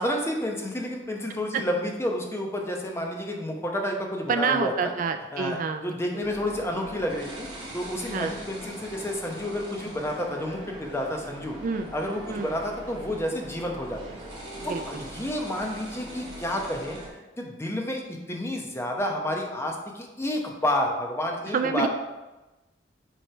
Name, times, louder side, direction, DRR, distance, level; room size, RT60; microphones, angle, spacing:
voice 1, 0.0-4.9 5.3-7.5 7.7-11.6 11.9-14.0 14.6-17.0 17.4-21.9, left 1 dB, 15° left, 1 dB, 0.8 m, -30 dB
voice 2, 4.3-5.8 8.1-8.4 11.6-11.9 12.3-12.5 14.7-15.0 21.5-21.9, right 5 dB, 45° right, 7 dB, 0.3 m, -28 dB
sound 1, 6.2-17.1, right 1 dB, 25° right, 1.8 m, -41 dB
7.9 x 3.2 x 4.4 m, 1.1 s
head